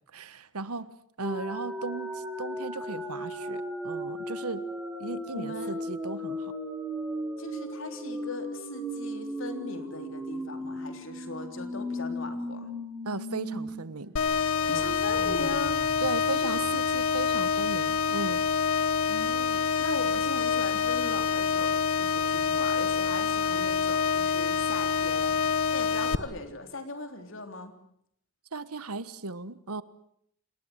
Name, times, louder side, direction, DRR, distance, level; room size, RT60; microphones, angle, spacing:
voice 1, 0.1-0.9 1.2-4.6 5.0-6.5 13.0-14.2 14.7-14.9 16.0-18.5 28.5-29.8, right 3 dB, 90° right, 16 dB, 1.3 m, -36 dB
sound 1, 1.2-13.7 14.0-14.1 14.5-17.2, equal, 5° right, 4.7 m, -37 dB
voice 2, 5.3-5.7 7.4-12.7 14.7-15.8 16.4-16.6 19.1-25.4 25.7-27.7, left 2 dB, 60° left, 7 dB, 3.5 m, -39 dB
sound 2, 14.2-26.2, left 6 dB, 75° left, 1.1 m, -26 dB
29.5 x 19.5 x 8.1 m, 0.69 s
head